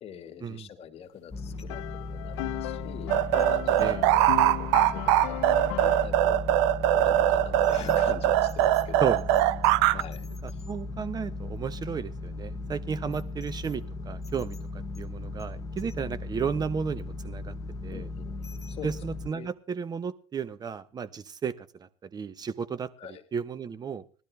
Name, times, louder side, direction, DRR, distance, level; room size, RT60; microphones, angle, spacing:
voice 1, 0.0-3.1 3.5-6.4 6.9-9.2 9.9-10.6 17.9-19.0 19.3-19.5 23.0-23.2, left 8 dB, 45° left, 5 dB, 1.8 m, -44 dB
sound 1, 1.3-19.3, left 2 dB, 25° left, 1.0 m, -37 dB
sound 2, 1.5-6.1, left 18 dB, 85° left, 0.6 m, -36 dB
sound 3, 3.1-10.0, right 13 dB, 85° right, 0.5 m, -22 dB
voice 2, 10.4-14.6 15.0-17.5 17.8-18.0 18.8-22.9 23.3-24.0, right 6 dB, 30° right, 16 dB, 0.8 m, -33 dB
19.0 x 12.0 x 3.3 m, 0.39 s
supercardioid pair, 105°, 14 cm